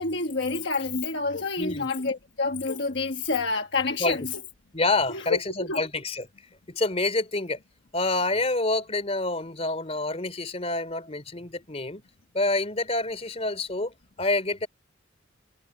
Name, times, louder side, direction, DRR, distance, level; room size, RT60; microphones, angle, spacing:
voice 1, 0.0-4.3 5.1-5.8, left 3 dB, 60° left, 1.3 m, -28 dB
voice 2, 1.6-1.9 4.0-4.2 4.7-6.3 6.7-7.6 7.9-12.0 12.3-13.9 14.2-14.7, left 2 dB, 30° left, 3.3 m, -27 dB
head